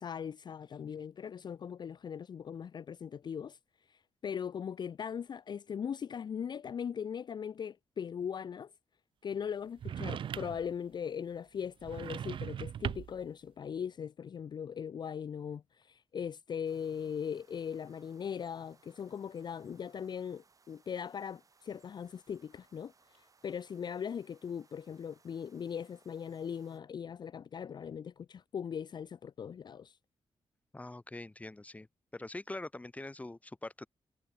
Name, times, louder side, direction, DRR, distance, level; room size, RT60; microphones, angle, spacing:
voice 1, 0.0-3.6 3.9-8.7 9.2-30.0, left 7 dB, 50° left, 0.5 m, -40 dB
sound 1, 9.8-10.7 11.8-13.3, right 9 dB, 60° right, 0.4 m, -39 dB
sound 2, 16.6-26.8, right 4 dB, 35° right, 4.0 m, -67 dB
voice 2, 30.7-31.9 32.1-33.9, left 2 dB, 15° left, 1.8 m, -43 dB
cardioid pair, 115°, 10 cm